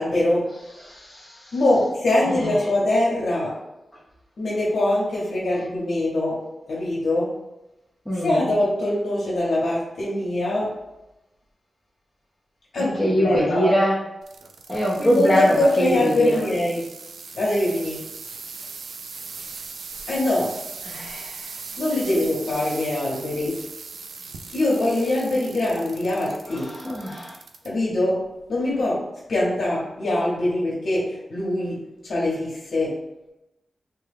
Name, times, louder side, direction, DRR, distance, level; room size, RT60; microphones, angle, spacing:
voice 1, 0.0-0.8 1.5-3.6 4.4-7.3 8.1-10.7 12.7-13.7 15.0-16.9 17.3-18.0 20.1-20.6 21.8-23.6 24.5-26.8 27.6-33.0, left 1 dB, 65° left, -6 dB, 0.8 m, -23 dB
voice 2, 0.9-1.5 2.3-2.5 8.1-8.5 13.0-14.0 14.7-16.4 20.9-21.5 26.5-27.3, equal, ahead, -7 dB, 0.5 m, -23 dB
sound 1, 14.2-27.7 28.2-28.7 29.3-29.4, right 4 dB, 90° right, 0.3 m, -39 dB
3.3 x 2.2 x 3.4 m, 0.95 s
wide cardioid pair, 175°, 0 cm